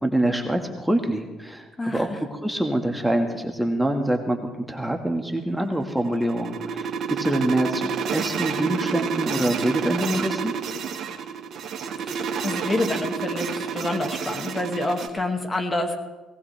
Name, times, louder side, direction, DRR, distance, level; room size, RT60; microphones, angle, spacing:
voice 1, 0.0-10.5, right 1 dB, 5° right, 4 dB, 1.7 m, -25 dB
voice 2, 1.8-2.2 12.0-16.0, left 2 dB, 25° left, 4 dB, 2.1 m, -28 dB
sound 1, 5.7-15.1, right 6 dB, 60° right, 1.7 m, -29 dB
18.0 x 18.0 x 3.4 m, 1.2 s
hypercardioid pair, 60°, 0 cm